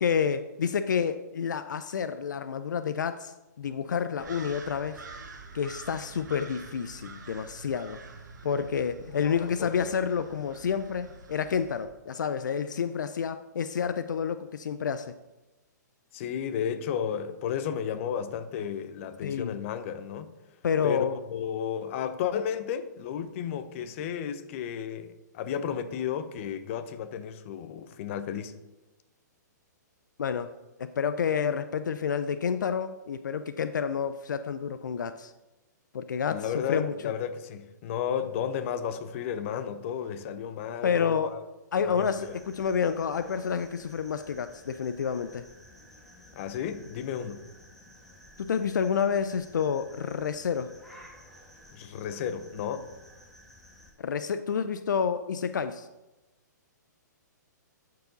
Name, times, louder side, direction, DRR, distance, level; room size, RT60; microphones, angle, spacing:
voice 1, 0.0-5.0 5.5-8.0 8.4-15.1 19.2-19.6 20.6-21.2 30.2-30.5 30.8-35.3 35.9-37.1 40.8-41.3 41.7-45.4 48.4-50.7 54.0-55.9, left 7 dB, 75° left, 0.4 m, -29 dB
sound 1, 4.2-11.9, right 3 dB, 75° right, 1.2 m, -46 dB
voice 2, 9.2-9.9 16.1-20.3 20.8-28.6 36.3-41.4 41.8-42.4 46.3-47.4 51.7-52.9, left 8 dB, 45° left, 0.7 m, -33 dB
sound 2, 42.0-53.9, equal, ahead, 1.6 m, -53 dB
11.0 x 4.8 x 3.9 m
hypercardioid pair, 130°, 10 cm